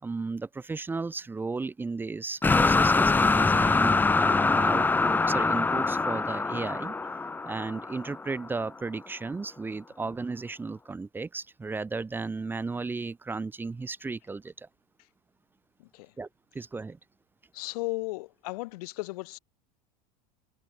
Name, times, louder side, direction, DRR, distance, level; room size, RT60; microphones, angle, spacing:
voice 1, 0.0-6.9 7.5-14.7 16.2-17.0, right 3 dB, 10° right, 1.8 m, -34 dB
sound 1, 2.4-8.5, left 3 dB, 10° left, 1.6 m, -24 dB
voice 2, 15.8-16.2 17.5-19.4, left 21 dB, 70° left, 3.8 m, -36 dB
supercardioid pair, 155°, 20 cm